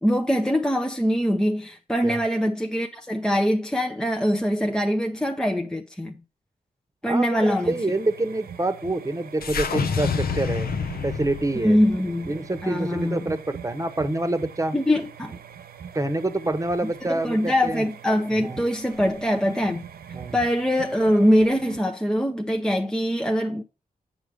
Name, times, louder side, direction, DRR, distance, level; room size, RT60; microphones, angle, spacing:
voice 1, 0.0-6.1 7.0-7.7 11.6-12.3 12.6-13.3 14.7-15.4 17.1-19.8 20.3-23.6, equal, 5° left, 0.8 m, -23 dB
voice 2, 7.0-10.7 11.0-11.8 12.3-14.8 15.9-17.8 18.4-18.6 20.1-20.4, right 2 dB, 20° right, 1.2 m, -27 dB
sound 1, 7.4-21.8, right 8 dB, 75° right, 0.7 m, -43 dB
sound 2, 9.4-13.7, left 6 dB, 70° left, 0.8 m, -29 dB
7.9 x 5.0 x 4.9 m
cardioid pair, 60°, 16 cm